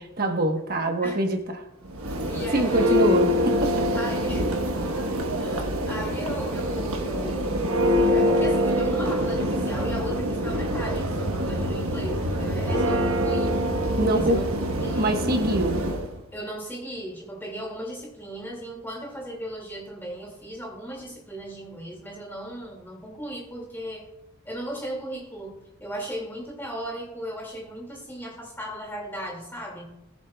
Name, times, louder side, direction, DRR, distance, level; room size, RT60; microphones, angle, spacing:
voice 1, 0.0-1.4 2.5-3.9 14.0-14.4 15.0-15.8, right 2 dB, 45° right, 3 dB, 1.2 m, -24 dB
voice 2, 1.0-1.3 2.3-3.0 3.9-4.8 5.3-13.6 14.1-14.4 14.8-15.1 16.3-24.0 24.4-29.8, equal, 10° left, -2 dB, 2.3 m, -36 dB
Church bell, 1.8-16.1, equal, 90° right, 1.2 m, -25 dB
19.0 x 7.3 x 2.3 m, 0.88 s
head